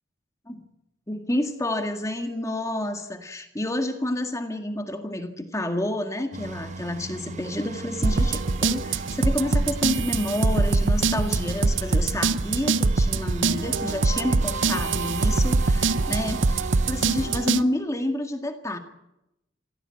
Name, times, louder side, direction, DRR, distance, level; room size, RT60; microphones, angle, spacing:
voice 1, 1.1-18.8, left 1 dB, 15° left, 5 dB, 1.9 m, -29 dB
sound 1, 6.3-17.3, right 3 dB, 40° right, 1.0 m, -37 dB
sound 2, 8.0-17.6, right 3 dB, 75° right, 0.8 m, -23 dB
25.0 x 16.5 x 8.6 m, 0.89 s
head